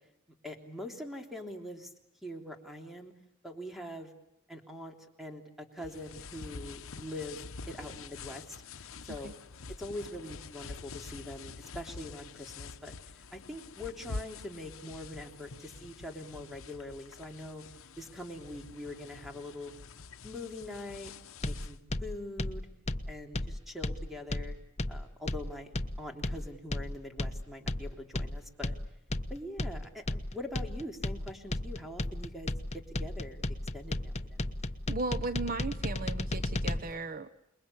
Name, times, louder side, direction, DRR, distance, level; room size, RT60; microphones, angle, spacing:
voice 1, 0.4-1.9 2.2-3.1 3.4-4.1 4.5-7.4 7.7-8.6 9.0-9.3 9.8-12.9 13.3-17.6 18.0-19.7 20.2-21.1 21.4-22.7 23.1-24.6 24.9-28.7 29.3-34.5, left 1 dB, ahead, 2 dB, 3.3 m, -43 dB
sound 1, 5.8-21.8, left 4 dB, 70° left, 1.0 m, -46 dB
sound 2, 21.4-36.8, left 1 dB, 30° left, 1.1 m, -34 dB
voice 2, 34.9-37.4, right 3 dB, 40° right, 10 dB, 0.9 m, -36 dB
28.0 x 21.5 x 8.5 m, 0.83 s
head